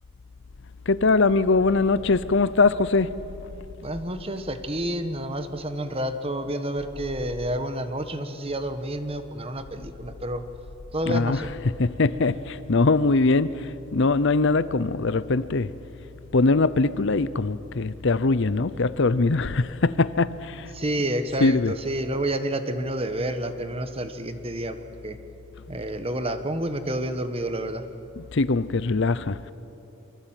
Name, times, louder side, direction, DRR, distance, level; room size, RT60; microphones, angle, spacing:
voice 1, 0.9-3.1 11.1-11.5 11.8-15.7 16.3-20.7 21.4-21.7 28.2-29.5, left 3 dB, 55° left, 0.7 m, -22 dB
voice 2, 3.8-10.4 10.9-11.5 20.7-25.2 25.7-27.8, right 1 dB, 25° right, 1.4 m, -29 dB
26.5 x 24.0 x 9.1 m
head